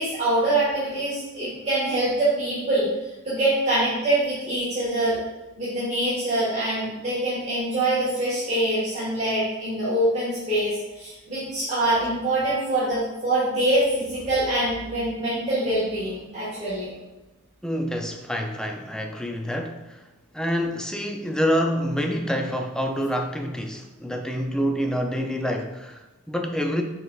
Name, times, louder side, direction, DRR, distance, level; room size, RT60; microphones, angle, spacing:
voice 1, 0.0-2.9 3.2-5.2 5.6-16.9, right 1 dB, 30° right, -10 dB, 1.3 m, -24 dB
voice 2, 17.6-20.1 20.3-26.8, equal, 5° left, 3 dB, 0.3 m, -27 dB
5.2 x 4.4 x 2.3 m, 1.1 s
head